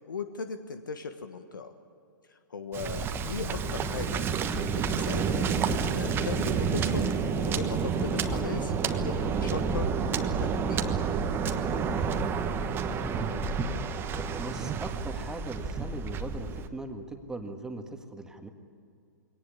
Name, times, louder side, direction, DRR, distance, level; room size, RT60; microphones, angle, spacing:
voice 1, 0.1-1.7 2.5-4.2 4.5-5.5 5.8-7.1 7.4-10.9, left 5 dB, 75° left, 8 dB, 1.4 m, -38 dB
Waves surf, 2.7-16.7, right 6 dB, 20° right, 1.2 m, -30 dB
sound 1, 2.8-15.0 15.6-15.7, left 3 dB, 30° left, 4.0 m, -40 dB
voice 2, 14.1-18.5, right 2 dB, 5° right, 5 dB, 1.8 m, -40 dB
22.0 x 18.0 x 9.9 m, 2.5 s
hypercardioid pair, 120°, 11 cm